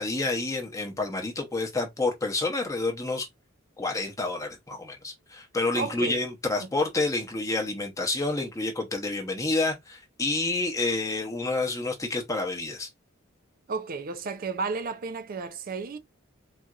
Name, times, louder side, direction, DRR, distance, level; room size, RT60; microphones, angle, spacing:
voice 1, 0.0-3.3 3.8-12.9, left 2 dB, 15° left, 0.7 m, -29 dB
voice 2, 5.7-6.2 6.6-6.7 13.7-16.0, right 4 dB, 45° right, 0.4 m, -33 dB
4.1 x 2.5 x 2.3 m
head